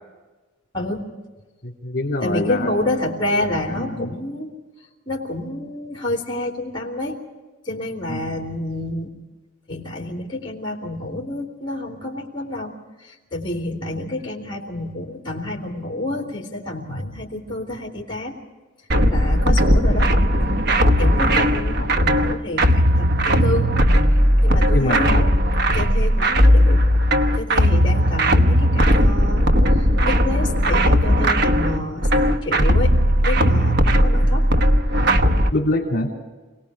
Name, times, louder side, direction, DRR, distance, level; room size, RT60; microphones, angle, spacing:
voice 1, 1.6-2.7 3.3-4.1 8.1-8.4 13.9-14.0 19.4-19.7 21.3-21.4 24.7-25.3 25.9-26.0 35.5-36.1, left 1 dB, 45° left, 0 dB, 3.3 m, -26 dB
voice 2, 2.2-4.5 5.1-7.1 7.6-9.1 9.7-12.7 13.0-18.4 19.0-20.1 21.0-23.8 24.4-25.3 25.7-26.8 27.4-32.9 33.2-34.5, left 1 dB, 20° left, -1 dB, 3.2 m, -28 dB
sound 1, 18.9-35.5, equal, 50° right, 1.1 m, -17 dB
28.0 x 19.0 x 4.9 m, 1.2 s
head